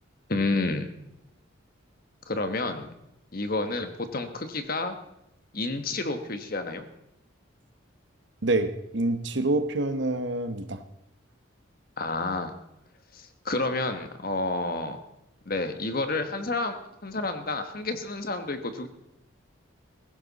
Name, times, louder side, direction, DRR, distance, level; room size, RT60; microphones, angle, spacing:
voice 1, 0.3-0.9 2.3-2.9 3.3-5.0 5.5-6.8 12.0-12.5 13.1-15.0 15.5-16.8 17.0-18.9, left 2 dB, 45° left, 7 dB, 1.3 m, -30 dB
voice 2, 8.4-10.8, right 2 dB, 60° right, 9 dB, 1.0 m, -27 dB
16.0 x 15.5 x 4.1 m, 0.84 s
head